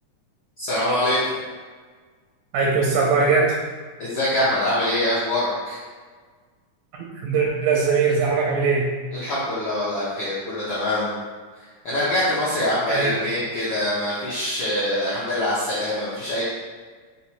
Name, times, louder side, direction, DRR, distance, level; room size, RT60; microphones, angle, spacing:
voice 1, 0.6-1.3 4.0-5.8 9.1-11.1 11.8-16.4, left 1 dB, 75° left, -10 dB, 1.1 m, -24 dB
voice 2, 2.5-3.5 7.2-9.0 12.9-13.2, right 4 dB, 90° right, -3 dB, 2.0 m, -20 dB
4.8 x 2.0 x 4.3 m, 1.5 s
omnidirectional pair, 3.4 m